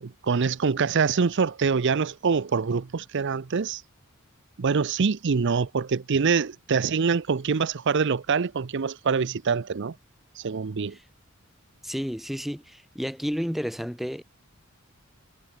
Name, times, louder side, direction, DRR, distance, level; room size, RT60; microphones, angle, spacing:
voice 1, 0.0-3.8 4.6-9.9 10.4-11.0, right 5 dB, 60° right, 0.6 m, -25 dB
voice 2, 11.8-14.2, equal, ahead, 2.0 m, -31 dB
head